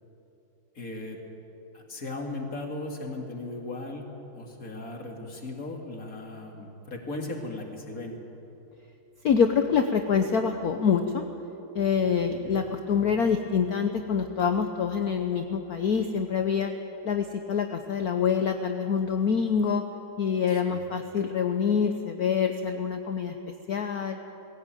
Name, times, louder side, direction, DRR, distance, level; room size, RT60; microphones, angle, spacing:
voice 1, 0.7-1.2 1.7-4.1 4.3-8.2 12.5-12.6 20.5-20.8, left 2 dB, 40° left, 1 dB, 2.8 m, -37 dB
voice 2, 9.2-11.2 11.7-16.7 17.0-19.8 20.2-23.3 23.7-24.2, left 6 dB, 55° left, 6 dB, 1.1 m, -26 dB
20.5 x 17.0 x 9.1 m, 2.9 s
omnidirectional pair, 2.4 m